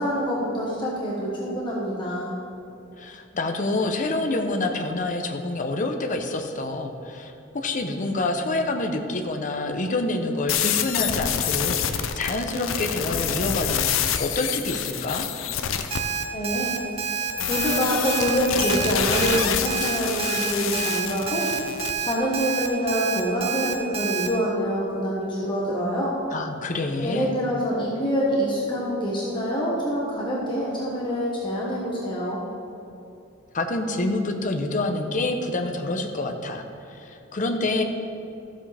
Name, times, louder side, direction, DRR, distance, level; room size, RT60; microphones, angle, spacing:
voice 1, 0.0-2.3 16.3-16.8 17.5-21.5 22.0-26.1 27.0-32.4, equal, 25° left, -5 dB, 1.4 m, -26 dB
voice 2, 3.0-15.3 26.3-27.3 33.5-36.6 36.9-37.8, left 2 dB, 40° left, 4 dB, 0.8 m, -27 dB
sound 1, 10.5-16.0 17.4-21.9, left 8 dB, 70° left, 0.5 m, -27 dB
Alarm, 15.9-24.3, right 7 dB, 30° right, 0.7 m, -28 dB
14.0 x 7.4 x 3.4 m, 2.8 s
head